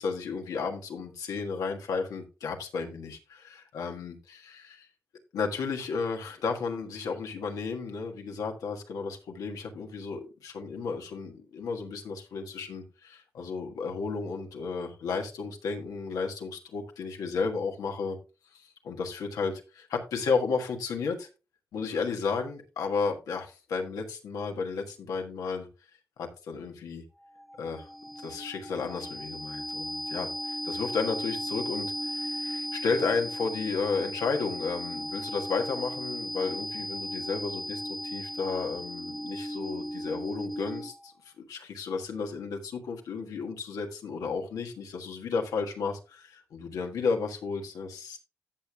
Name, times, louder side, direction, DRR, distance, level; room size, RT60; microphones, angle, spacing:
voice 1, 0.0-4.9 5.3-18.2 18.5-21.3 21.7-25.7 26.2-27.0 27.6-27.9 28.2-48.2, left 4 dB, 90° left, 3 dB, 1.5 m, -33 dB
sound 1, 27.2-41.1, equal, ahead, 0.5 m, -36 dB
14.5 x 6.7 x 2.3 m, 0.30 s
supercardioid pair, 45°, 6 cm